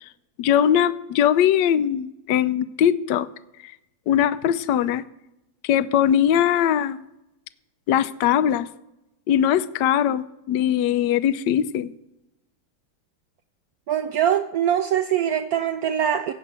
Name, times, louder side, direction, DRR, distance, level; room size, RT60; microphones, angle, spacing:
voice 1, 0.4-3.3 3.6-3.7 4.1-5.0 5.6-7.0 7.9-8.7 9.3-11.9, left 10 dB, 70° left, 14 dB, 1.1 m, -21 dB
voice 2, 13.9-16.3, right 10 dB, 80° right, 8 dB, 0.8 m, -23 dB
16.5 x 5.5 x 7.5 m, 0.92 s
omnidirectional pair, 2.3 m